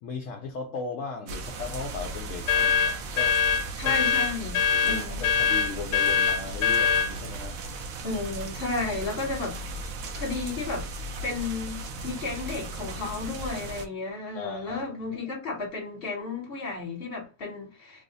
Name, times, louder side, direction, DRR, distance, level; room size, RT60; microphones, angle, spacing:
voice 1, 0.0-3.4 3.8-4.0 4.7-7.6 14.3-14.8 15.1-15.2, left 4 dB, 65° left, 0.9 m, -37 dB
sound 1, 1.3-13.9, right 2 dB, 65° right, 0.9 m, -37 dB
sound 2, 2.5-7.1, left 6 dB, 85° left, 1.1 m, -23 dB
voice 2, 3.8-5.3 8.0-9.6 10.1-10.9 11.2-18.0, left 3 dB, 40° left, 1.4 m, -33 dB
3.0 x 2.0 x 3.9 m
omnidirectional pair, 1.6 m